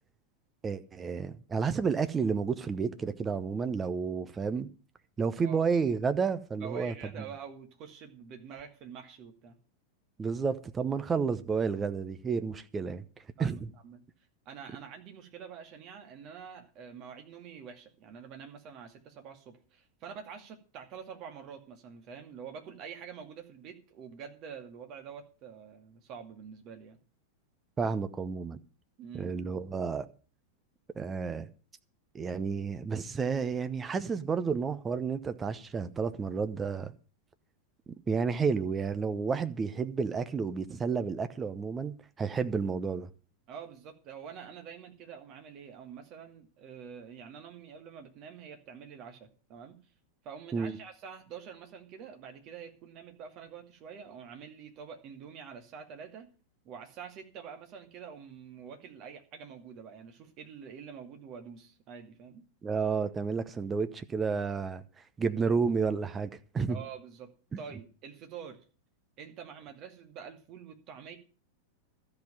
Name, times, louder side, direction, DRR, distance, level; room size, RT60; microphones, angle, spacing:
voice 1, 0.6-4.7 5.2-6.9 10.2-13.0 13.4-13.7 27.8-28.6 29.1-30.0 31.0-31.5 32.1-36.9 38.1-43.1 50.5-50.8 62.6-64.8 65.2-66.8, right 5 dB, 20° right, 0.9 m, -31 dB
voice 2, 6.6-9.6 13.4-14.0 14.5-27.0 29.0-29.3 43.5-49.8 50.2-56.3 56.6-62.4 66.7-68.6 69.2-71.2, right 7 dB, 40° right, 2.3 m, -46 dB
13.0 x 5.6 x 9.1 m
figure-of-eight pair, 90°, 0 cm